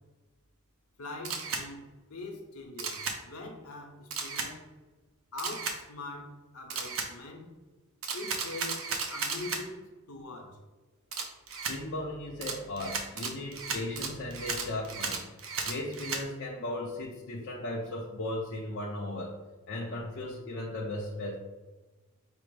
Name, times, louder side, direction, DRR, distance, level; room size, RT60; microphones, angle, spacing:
voice 1, 1.0-1.8 2.1-4.6 5.3-7.5 8.1-10.6, left 2 dB, 75° left, 2 dB, 0.9 m, -43 dB
Camera, 1.2-1.6 2.8-3.2 4.1-4.5 5.4-5.8 6.7-7.1 8.0-9.6 11.1-11.8 12.4-16.2, right 5 dB, 60° right, 0.6 m, -34 dB
voice 2, 11.7-15.2 15.6-19.4 19.7-21.4, left 1 dB, 55° left, -3 dB, 0.6 m, -36 dB
5.0 x 2.0 x 4.6 m, 1.2 s
head